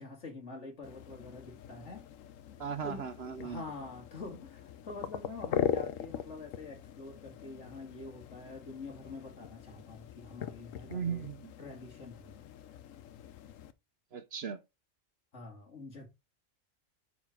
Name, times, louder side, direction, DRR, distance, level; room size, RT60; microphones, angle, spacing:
voice 1, 0.0-2.1 2.8-3.1 3.4-11.2 11.6-12.4 15.3-16.1, left 3 dB, 60° left, 2.5 m, -46 dB
sound 1, 0.8-13.7, left 9 dB, 75° left, 1.1 m, -41 dB
voice 2, 2.6-3.6 10.9-11.5 14.1-14.6, right 7 dB, 55° right, 0.9 m, -37 dB
9.0 x 4.2 x 4.8 m
omnidirectional pair, 1.4 m